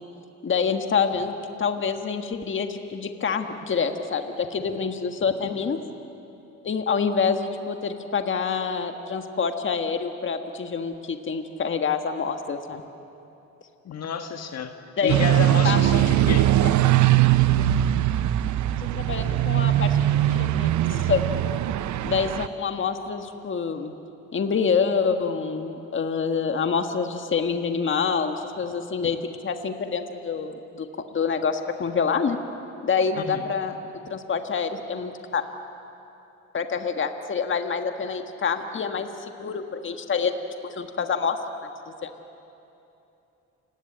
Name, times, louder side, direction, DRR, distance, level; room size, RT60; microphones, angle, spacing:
voice 1, 0.4-1.3 1.6-5.8 6.6-12.8 15.0-15.2 15.6-15.9 18.8-21.2 22.0-23.9 24.3-29.2 29.4-30.9 31.1-32.4 32.8-33.8 34.1-35.4 36.5-40.3 40.6-41.4 42.0-42.1, left 6 dB, 40° left, 6 dB, 1.6 m, -26 dB
voice 2, 13.9-14.7 15.0-16.5 33.2-33.4, left 6 dB, 60° left, 6 dB, 1.6 m, -30 dB
sound 1, 15.1-22.5, right 13 dB, 75° right, 0.8 m, -21 dB
29.5 x 19.0 x 8.7 m, 2.9 s
cardioid pair, 90°, 30 cm